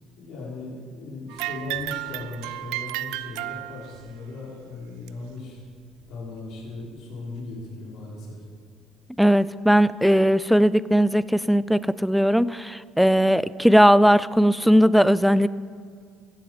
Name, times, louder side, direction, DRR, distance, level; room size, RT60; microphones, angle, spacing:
voice 1, 0.2-5.6 6.1-8.4, left 3 dB, 65° left, -5 dB, 5.4 m, -38 dB
sound 1, 1.3-4.1 5.1-5.2 6.0-6.1 7.0-7.1, right 16 dB, 75° right, 0.4 m, -33 dB
voice 2, 9.2-15.5, equal, ahead, 18 dB, 0.5 m, -18 dB
15.5 x 15.0 x 5.2 m, 2.1 s
hypercardioid pair, 60°, 0 cm